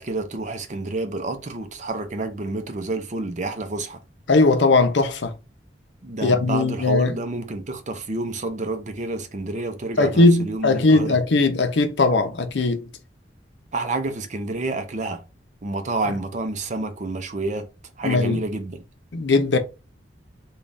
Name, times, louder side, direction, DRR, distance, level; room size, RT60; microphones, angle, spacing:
voice 1, 0.0-4.0 6.0-11.2 13.7-15.2 15.6-17.7 18.0-18.8, right 2 dB, 40° right, 0.5 m, -29 dB
voice 2, 4.3-5.3 6.2-7.1 10.0-12.8 18.0-18.4 19.1-19.6, left 3 dB, 70° left, 0.6 m, -19 dB
3.9 x 2.3 x 3.2 m
head